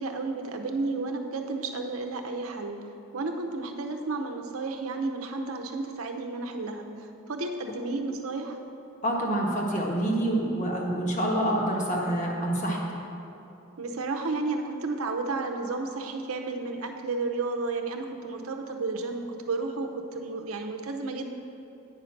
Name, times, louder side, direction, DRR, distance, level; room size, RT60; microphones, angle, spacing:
voice 1, 0.0-2.8 3.1-6.9 7.3-8.6 13.8-21.3, right 3 dB, 80° right, 4 dB, 0.7 m, -32 dB
voice 2, 9.0-12.8, right 1 dB, 35° left, -2 dB, 1.2 m, -27 dB
9.1 x 5.2 x 5.8 m, 2.8 s
head